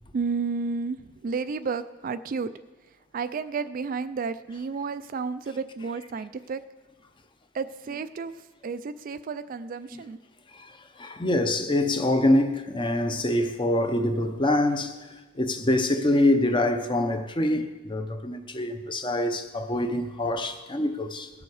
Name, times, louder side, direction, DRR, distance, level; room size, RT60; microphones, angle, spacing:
voice 1, 0.1-2.5 2.8-6.6 7.5-10.2, right 5 dB, 40° right, 0.3 m, -32 dB
voice 2, 10.5-15.0 15.3-21.3, left 1 dB, 25° left, 0.7 m, -25 dB
18.5 x 7.0 x 4.8 m
head